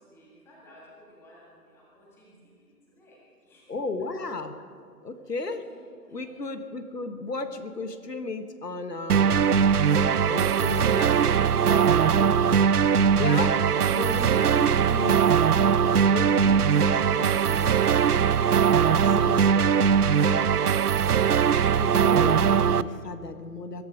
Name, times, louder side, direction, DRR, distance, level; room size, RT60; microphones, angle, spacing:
voice 1, 0.1-2.7 2.9-3.7 5.7-5.8 6.1-6.4, equal, 5° left, -5 dB, 1.8 m, -55 dB
voice 2, 3.7-4.6 5.0-5.7 6.1-9.5 10.3-12.4 13.1-13.6 13.9-15.3 16.1-17.8 18.8-19.8 21.8-23.9, left 3 dB, 80° left, 9 dB, 1.5 m, -35 dB
sound 1, 9.1-22.8, right 7 dB, 75° right, 0.6 m, -21 dB
21.5 x 11.0 x 5.2 m, 2.1 s
figure-of-eight pair, 155°, 47 cm